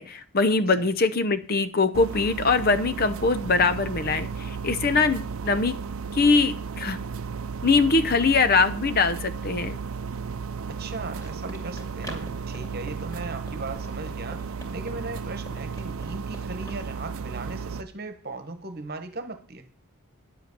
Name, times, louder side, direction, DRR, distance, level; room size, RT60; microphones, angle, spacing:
voice 1, 0.0-5.8 6.1-7.0 7.6-9.8, left 4 dB, 40° left, 0.7 m, -22 dB
sound 1, 1.9-17.8, right 5 dB, 75° right, 0.6 m, -34 dB
voice 2, 10.7-19.7, right 3 dB, 45° right, 1.3 m, -38 dB
Run, 11.1-16.8, equal, 15° left, 2.6 m, -46 dB
10.5 x 7.9 x 6.6 m
head